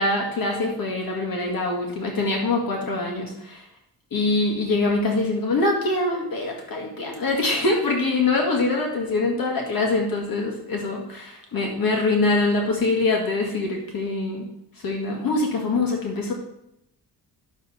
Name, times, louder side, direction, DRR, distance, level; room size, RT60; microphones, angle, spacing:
voice 1, 0.0-3.6 4.1-14.5 14.8-16.3, left 3 dB, 55° left, 0 dB, 1.9 m, -24 dB
10.0 x 6.9 x 4.2 m, 0.81 s
cardioid pair, 100°, 41 cm